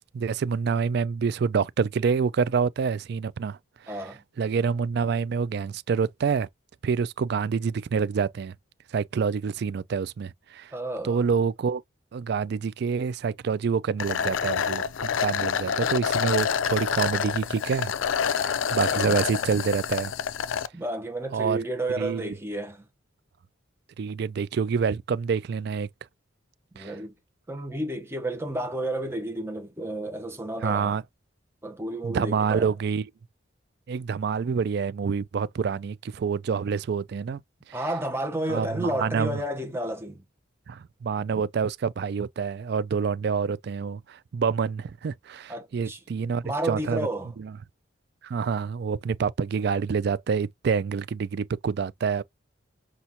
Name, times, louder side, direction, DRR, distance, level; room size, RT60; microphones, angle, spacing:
voice 1, 0.1-3.6 3.8-4.0 4.4-6.5 6.8-8.5 8.9-10.7 11.0-11.8 12.1-17.9 18.3-20.1 21.3-21.6 22.0-22.3 24.0-25.9 26.8-26.9 30.6-31.0 32.0-33.1 33.9-37.4 38.5-39.4 40.7-47.1 47.4-47.5 48.2-52.2, right 6 dB, 55° right, 0.3 m, -27 dB
voice 2, 3.9-4.2 10.7-11.2 18.8-19.3 20.7-22.8 26.7-27.1 27.5-31.0 31.6-32.7 37.7-40.2 45.5-46.0 46.4-47.3, right 1 dB, 15° right, 0.9 m, -31 dB
Straw Slurp, 14.0-20.7, left 7 dB, 80° left, 0.4 m, -27 dB
5.6 x 2.4 x 2.8 m
head